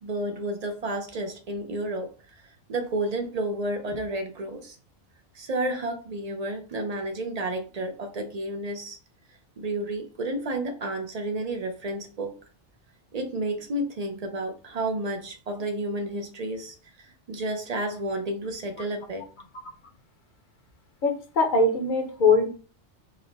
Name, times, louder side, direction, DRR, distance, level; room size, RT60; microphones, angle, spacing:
voice 1, 0.0-2.1 2.7-4.8 5.4-9.0 9.6-12.3 13.1-19.2, right 1 dB, 55° right, 5 dB, 0.4 m, -31 dB
voice 2, 21.0-22.5, left 3 dB, 50° left, 3 dB, 0.8 m, -21 dB
3.8 x 2.1 x 3.9 m, 0.38 s
omnidirectional pair, 1.2 m